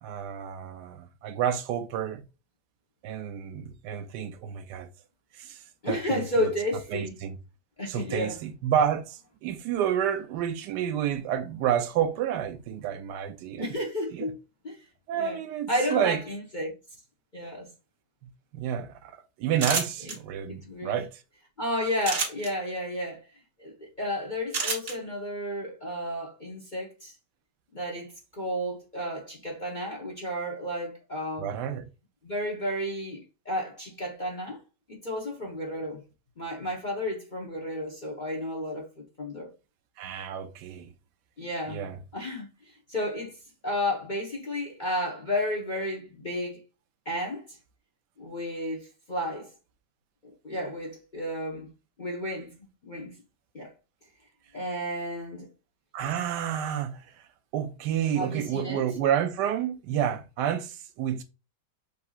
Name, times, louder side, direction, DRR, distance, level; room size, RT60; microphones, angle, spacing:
voice 1, 0.0-2.2 3.0-4.9 5.4-5.6 5.9-6.2 6.9-7.4 7.9-13.7 14.1-14.3 15.1-16.2 18.5-21.2 31.4-31.8 40.0-40.9 41.7-42.0 55.9-57.0 57.5-61.2, right 9 dB, 70° right, 1.0 m, -29 dB
voice 2, 5.8-7.1 7.8-8.4 13.6-14.4 14.6-14.8 15.1-15.4 15.7-16.7 17.3-17.7 20.0-20.1 20.5-21.0 21.6-23.2 23.6-27.1 27.7-31.5 32.2-34.6 34.9-36.0 36.4-39.5 41.4-42.5 42.9-43.4 43.6-46.6 47.0-47.6 48.2-49.5 50.2-51.7 52.0-52.5 52.8-53.1 53.5-53.7 54.5-55.5 58.0-58.8, left 1 dB, 40° left, 0.7 m, -32 dB
sound 1, 19.6-20.1 22.0-22.5 24.5-24.9, right 4 dB, 45° right, 0.8 m, -28 dB
6.7 x 2.8 x 2.4 m
omnidirectional pair, 2.2 m